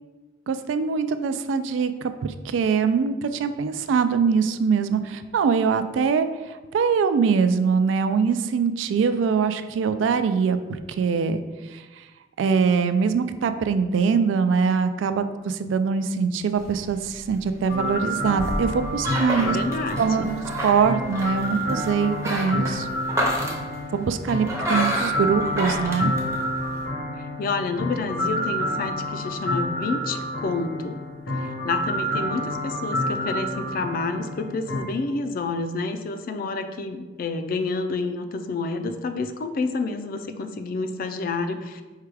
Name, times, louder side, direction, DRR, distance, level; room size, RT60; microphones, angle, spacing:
voice 1, 0.5-10.6 10.9-11.4 11.7-11.8 12.4-19.6 20.0-20.3 20.6-22.9 23.9-26.1, right 5 dB, 85° right, 10 dB, 0.3 m, -23 dB
sound 1, 16.6-26.8, equal, 15° right, 0.6 m, -31 dB
sound 2, 17.7-34.8, left 1 dB, 85° left, 1.0 m, -29 dB
voice 2, 19.3-20.4 27.4-31.0 31.4-41.8, left 3 dB, 50° left, 8 dB, 0.3 m, -29 dB
4.7 x 2.3 x 4.6 m, 1.2 s
head